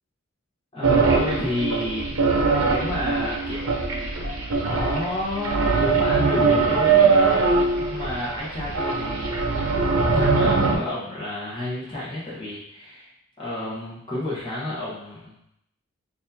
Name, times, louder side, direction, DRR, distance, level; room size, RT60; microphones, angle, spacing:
voice 1, 0.7-2.2 2.6-4.3 4.6-9.4 10.1-13.1 13.4-15.4, left 1 dB, 25° left, -9 dB, 1.1 m, -31 dB
sound 1, 0.8-10.8, right 4 dB, 85° right, 0.6 m, -21 dB
4.4 x 2.6 x 2.7 m, 0.73 s
head